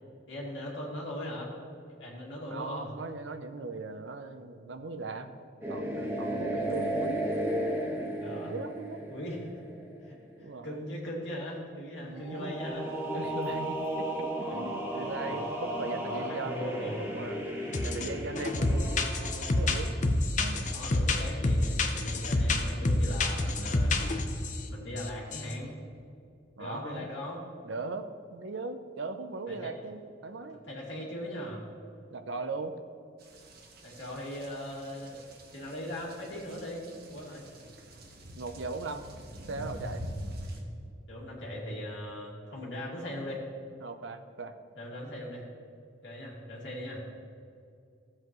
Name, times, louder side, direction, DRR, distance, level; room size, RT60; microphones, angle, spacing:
voice 1, 0.3-1.5 2.0-2.9 8.2-8.5 9.1-9.6 10.0-10.2 10.6-12.9 14.4-14.6 14.9-15.4 16.1-17.1 20.7-23.9 24.7-25.8 26.6-27.4 29.5-29.7 30.6-31.6 33.8-35.2 35.5-37.4 41.1-43.4 44.8-45.5 46.0-47.0, equal, 70° left, -4 dB, 2.4 m, -39 dB
voice 2, 2.5-5.4 5.7-7.3 8.3-9.0 10.4-10.8 12.0-12.5 13.1-19.0 19.6-20.0 20.4-20.7 26.6-27.1 27.6-30.6 32.1-32.7 38.4-39.0 39.5-40.0 43.8-44.5, right 3 dB, 75° right, 8 dB, 0.7 m, -39 dB
sound 1, 5.6-10.2 12.2-20.1, right 1 dB, 10° right, 1.2 m, -35 dB
sound 2, 17.7-18.1 18.4-24.6 25.0-25.1 25.3-25.5, left 2 dB, 40° left, 0.7 m, -28 dB
sound 3, 33.2-40.6, equal, 55° right, 1.2 m, -44 dB
14.5 x 7.7 x 3.1 m, 2.4 s
head